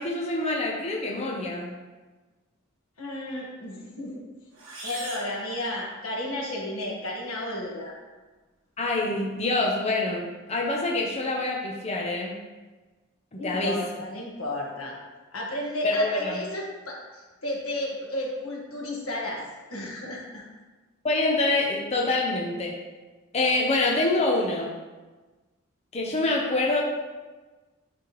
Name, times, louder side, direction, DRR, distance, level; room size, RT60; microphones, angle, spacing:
voice 1, 0.0-1.7 8.8-12.4 13.3-13.8 15.8-16.4 21.0-22.8 23.3-24.7 25.9-26.8, left 2 dB, 30° left, -2 dB, 0.7 m, -26 dB
voice 2, 3.0-4.2 4.8-7.9 13.4-14.9 15.3-19.4 19.7-20.4, left 1 dB, 85° left, -2 dB, 1.5 m, -33 dB
sound 1, 4.5-6.4, right 2 dB, 70° right, 1.5 m, -41 dB
10.0 x 3.4 x 3.0 m, 1.2 s
head